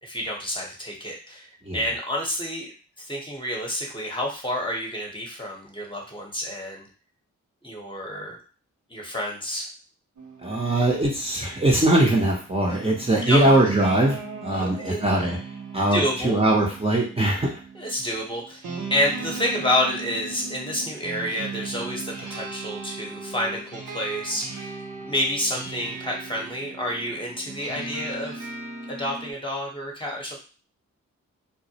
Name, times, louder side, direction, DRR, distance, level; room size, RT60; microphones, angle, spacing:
voice 1, 0.0-2.7 3.0-6.9 7.6-8.4 8.9-9.7 13.2-13.4 14.5-15.0 15.9-16.4 17.7-18.6 18.9-24.8 25.0-28.5 28.9-30.4, left 1 dB, 15° left, -2 dB, 0.9 m, -29 dB
sound 1, 10.2-29.3, right 3 dB, 65° right, 0.7 m, -37 dB
voice 2, 10.4-15.4 15.7-17.5, right 1 dB, 20° right, -3 dB, 0.7 m, -21 dB
2.2 x 2.1 x 2.8 m, 0.37 s
cardioid pair, 45°, 31 cm